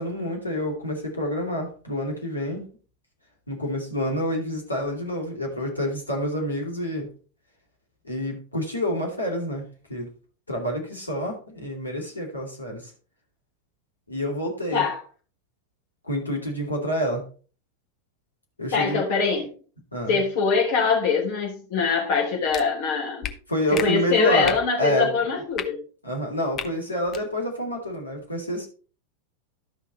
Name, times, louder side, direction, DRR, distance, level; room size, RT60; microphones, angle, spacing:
voice 1, 0.0-2.6 3.5-7.1 8.0-9.6 9.9-10.1 10.5-12.9 14.1-14.8 16.1-17.2 18.6-19.0 19.9-20.2 23.5-25.1 26.0-28.7, left 1 dB, 80° left, 0 dB, 3.1 m, -28 dB
voice 2, 18.7-19.5 20.1-23.3 23.7-25.8, left 5 dB, 50° left, 0 dB, 3.8 m, -23 dB
sound 1, 22.5-22.6 23.2-23.3 23.7-23.9 24.4-24.6 25.5-25.7 26.5-26.7 27.1-27.2, left 9 dB, 30° left, 0.9 m, -31 dB
12.5 x 5.6 x 4.1 m, 0.39 s
figure-of-eight pair, 90°, 0 cm